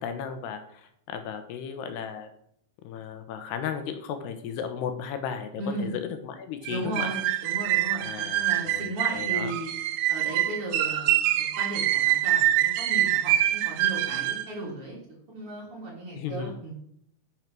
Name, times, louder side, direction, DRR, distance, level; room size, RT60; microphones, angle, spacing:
voice 1, 0.0-2.3 2.8-7.1 8.0-9.5 16.1-16.5, left 7 dB, 80° left, 7 dB, 3.0 m, -35 dB
voice 2, 5.6-5.9 6.7-9.7 10.1-15.0 15.3-16.8, right 1 dB, 35° right, -3 dB, 3.3 m, -36 dB
sound 1, 6.7-14.5, right 14 dB, 80° right, 2.4 m, -25 dB
9.4 x 6.5 x 6.0 m, 0.69 s
omnidirectional pair, 4.8 m